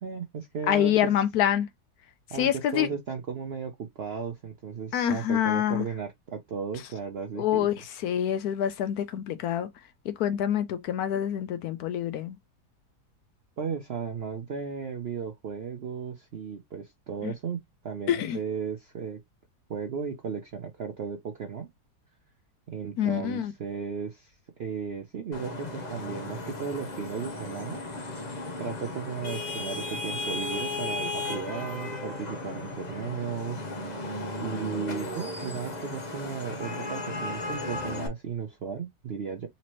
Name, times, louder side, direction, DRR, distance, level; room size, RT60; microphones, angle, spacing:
voice 1, 0.0-1.1 2.3-7.7 13.6-17.6 17.8-19.2 19.7-21.7 22.7-24.3 24.6-27.8 28.6-33.7 34.4-39.5, right 6 dB, 65° right, 0.6 m, -35 dB
voice 2, 0.7-1.7 2.4-2.9 4.9-5.8 7.4-9.7 10.1-12.4 17.2-17.3 18.1-18.4 23.0-23.5, left 10 dB, 70° left, 1.0 m, -26 dB
Vehicle horn car horn honking / Traffic noise roadway noise, 25.3-38.1, left 2 dB, 40° left, 0.7 m, -35 dB
4.2 x 2.8 x 3.0 m
omnidirectional pair, 1.8 m